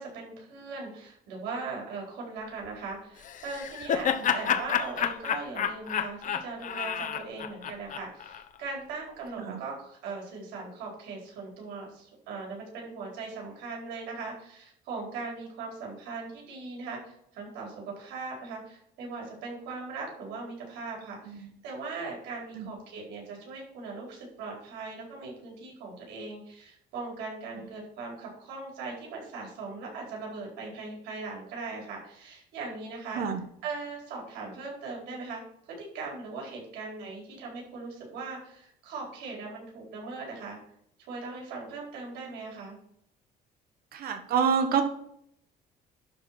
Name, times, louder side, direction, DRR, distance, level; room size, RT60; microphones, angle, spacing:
voice 1, 0.0-33.2 33.6-35.4 35.7-40.6 41.0-42.8, right 4 dB, 85° right, -1 dB, 4.6 m, -39 dB
Laughter, 3.2-8.4, left 8 dB, 50° left, 0.9 m, -30 dB
voice 2, 43.9-44.8, right 6 dB, 60° right, 7 dB, 1.4 m, -27 dB
11.5 x 4.5 x 6.0 m, 0.72 s
cardioid pair, 110°, 17 cm